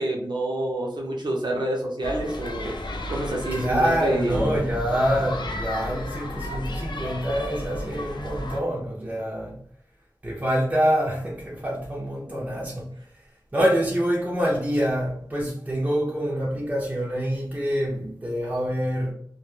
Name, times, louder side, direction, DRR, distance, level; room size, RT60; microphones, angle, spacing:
voice 1, 0.0-2.7 3.1-4.7, right 1 dB, 75° right, 0.7 m, -28 dB
sound 1, 2.0-8.6, left 1 dB, 80° left, 0.4 m, -33 dB
voice 2, 3.5-9.6 10.2-12.9 13.5-19.1, equal, 20° right, 0.5 m, -26 dB
2.2 x 2.0 x 3.1 m
wide cardioid pair, 75°, 8 cm